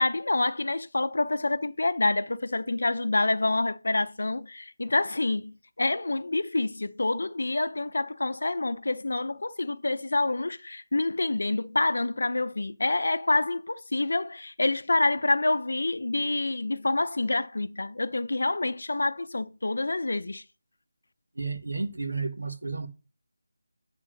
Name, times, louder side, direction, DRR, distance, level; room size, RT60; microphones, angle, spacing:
voice 1, 0.0-20.4, left 2 dB, 75° left, 0.6 m, -27 dB
voice 2, 21.3-22.9, right 4 dB, 80° right, 1.6 m, -32 dB
10.0 x 3.6 x 6.4 m
figure-of-eight pair, 170°, 0 cm